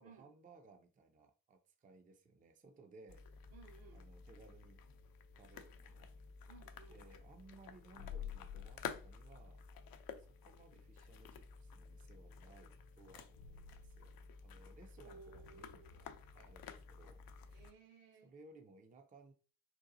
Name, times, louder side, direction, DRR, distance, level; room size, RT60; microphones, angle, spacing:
voice 1, 0.0-3.5 3.9-4.8 5.4-6.1 6.9-9.6 10.2-14.1 14.4-17.2 18.2-19.3, right 3 dB, 15° right, 0.5 m, -61 dB
sound 1, 3.1-17.7, left 7 dB, 45° left, 0.5 m, -51 dB
voice 2, 3.5-4.1 6.5-7.0 15.0-16.0 17.5-18.3, right 5 dB, 65° right, 1.1 m, -59 dB
4.0 x 2.3 x 2.6 m
hypercardioid pair, 45°, 49 cm